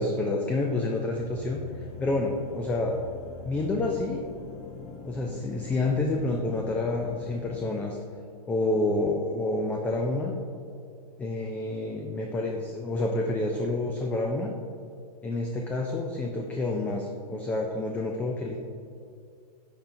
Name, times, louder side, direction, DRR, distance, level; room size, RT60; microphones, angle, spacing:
voice 1, 0.0-1.6 2.0-3.0 3.4-4.2 5.1-8.0 8.5-10.4 11.2-14.5 15.2-18.6, left 2 dB, 5° left, 1 dB, 0.3 m, -28 dB
sound 1, 1.1-7.6, left 4 dB, 30° left, 0.7 m, -44 dB
9.8 x 4.4 x 2.6 m, 2.4 s
hypercardioid pair, 125°, 21 cm